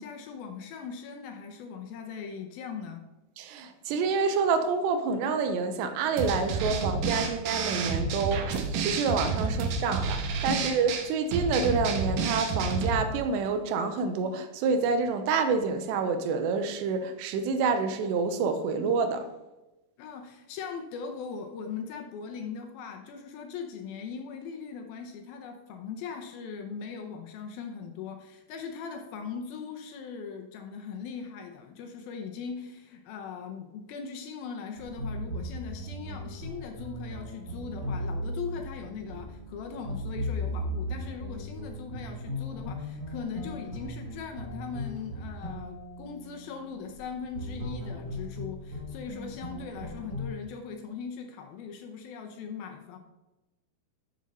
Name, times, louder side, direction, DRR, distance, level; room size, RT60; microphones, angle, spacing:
voice 1, 0.0-3.0 6.8-6.9 9.4-9.9 10.5-10.7 20.0-53.0, left 6 dB, 75° left, 4 dB, 2.4 m, -40 dB
voice 2, 3.4-19.2, right 4 dB, 90° right, 8 dB, 3.1 m, -28 dB
sound 1, 6.2-13.0, right 4 dB, 70° right, 2.1 m, -30 dB
sound 2, 34.8-50.3, equal, 35° right, 2.4 m, -37 dB
11.5 x 6.4 x 4.2 m, 1.0 s
omnidirectional pair, 4.8 m